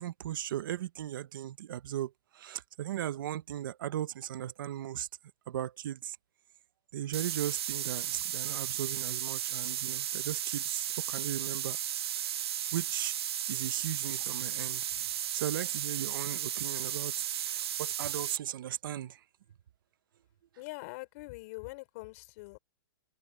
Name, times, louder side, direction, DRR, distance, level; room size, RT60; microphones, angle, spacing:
voice 1, 0.0-5.1 5.5-6.2 6.9-11.8 12.7-13.2 13.5-14.9 15.3-19.2, right 12 dB, 55° right, 1.0 m, -37 dB
sound 1, 7.1-18.4, right 11 dB, 85° right, 0.4 m, -35 dB
voice 2, 20.6-22.6, left 23 dB, 35° left, 4.4 m, -43 dB
hypercardioid pair, 165°, 13 cm